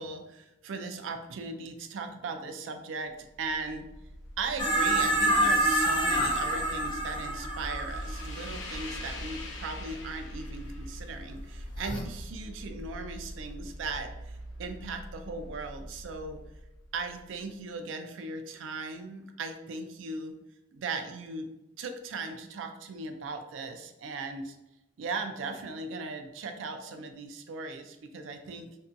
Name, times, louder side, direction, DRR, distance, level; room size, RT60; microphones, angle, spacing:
voice 1, 0.0-3.9 4.4-16.4 16.9-20.4 20.7-21.5 21.8-24.6 25.0-28.8, right 3 dB, 85° right, 6 dB, 0.4 m, -38 dB
sound 1, 3.2-17.4, equal, 85° left, 0.5 m, -42 dB
sound 2, 4.6-9.0 11.8-12.0, right 1 dB, 25° left, 0.4 m, -27 dB
2.6 x 2.2 x 2.5 m, 0.91 s
head